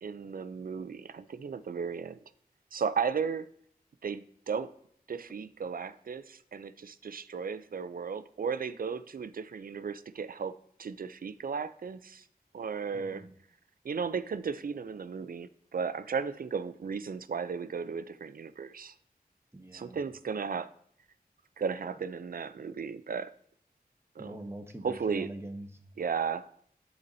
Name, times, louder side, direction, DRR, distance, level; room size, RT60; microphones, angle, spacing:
voice 1, 0.0-2.2 2.7-3.5 4.0-4.7 5.1-12.2 12.5-13.2 13.8-18.9 19.7-20.7 21.6-23.3 24.2-24.4 24.8-25.3 26.0-26.5, right 6 dB, 65° right, 14 dB, 0.4 m, -35 dB
voice 2, 12.9-13.3 19.5-20.0 24.2-25.9, right 1 dB, 15° right, 4 dB, 0.9 m, -43 dB
12.0 x 4.1 x 2.6 m, 0.64 s
wide cardioid pair, 70°, 16 cm